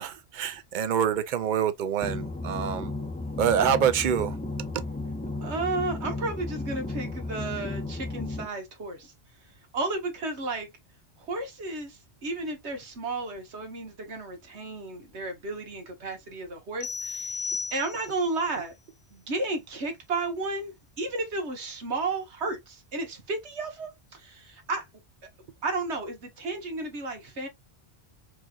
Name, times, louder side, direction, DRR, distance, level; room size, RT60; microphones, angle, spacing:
voice 1, 0.0-2.9 3.4-4.4 4.7-4.8, right 8 dB, 55° right, 0.7 m, -26 dB
sound 1, 2.0-8.5, left 2 dB, 10° left, 0.4 m, -34 dB
voice 2, 5.4-9.1 9.7-10.7 11.2-18.7 19.1-24.8 25.6-27.5, right 3 dB, 85° right, 1.5 m, -33 dB
sound 2, 16.8-18.3, left 4 dB, 55° left, 0.7 m, -34 dB
4.6 x 2.9 x 2.3 m
omnidirectional pair, 1.1 m